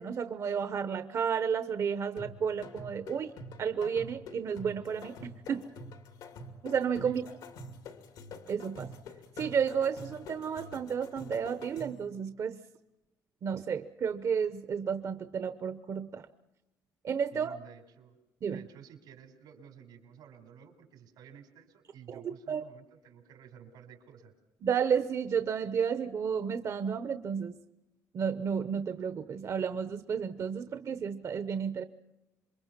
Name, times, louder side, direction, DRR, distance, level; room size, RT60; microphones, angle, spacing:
voice 1, 0.0-3.3 3.6-5.6 6.6-7.2 8.5-8.9 9.4-12.6 13.4-16.2 17.0-17.5 18.4-18.6 22.1-22.2 22.5-22.6 24.6-27.6 28.1-31.8, right 7 dB, 50° right, 9 dB, 0.9 m, -32 dB
sound 1, 2.2-12.1, left 2 dB, 85° left, 2.6 m, -47 dB
voice 2, 17.3-18.2 18.5-24.3, right 8 dB, 90° right, 5 dB, 4.7 m, -53 dB
27.5 x 23.0 x 6.0 m, 1.0 s
cardioid pair, 125°, 7 cm